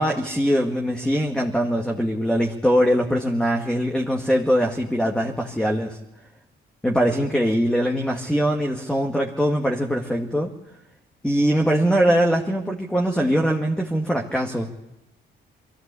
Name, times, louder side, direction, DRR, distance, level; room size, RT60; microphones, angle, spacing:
voice 1, 0.0-6.0 6.8-10.5 11.2-14.7, equal, 5° left, 1 dB, 2.0 m, -22 dB
22.5 x 16.0 x 8.4 m, 0.91 s
cardioid pair, 90°, 20 cm